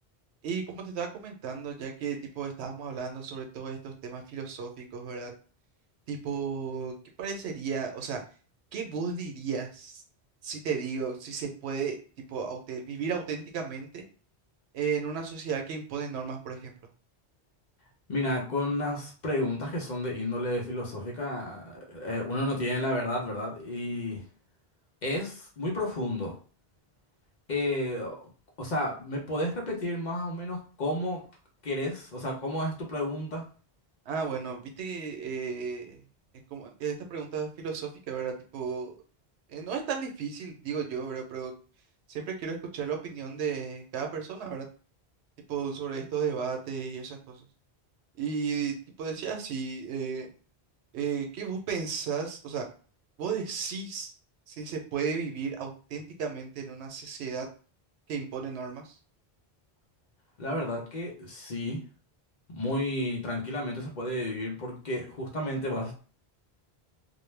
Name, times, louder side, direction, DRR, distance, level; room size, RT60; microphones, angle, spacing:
voice 1, 0.4-5.3 6.1-8.2 8.7-10.0 10.4-12.0 12.3-14.0 14.7-16.7 34.1-36.0 36.5-38.9 39.5-41.5 42.1-44.7 45.5-47.4 48.2-50.3 50.9-52.7 53.2-54.1 54.5-57.5 58.1-59.0, right 6 dB, 85° right, 3 dB, 0.9 m, -34 dB
voice 2, 18.1-24.2 25.0-26.3 27.5-28.3 28.6-31.2 31.6-33.4 60.4-61.8 62.5-65.9, left 1 dB, 50° left, -1 dB, 0.7 m, -31 dB
2.2 x 2.1 x 3.2 m, 0.39 s
omnidirectional pair, 1.1 m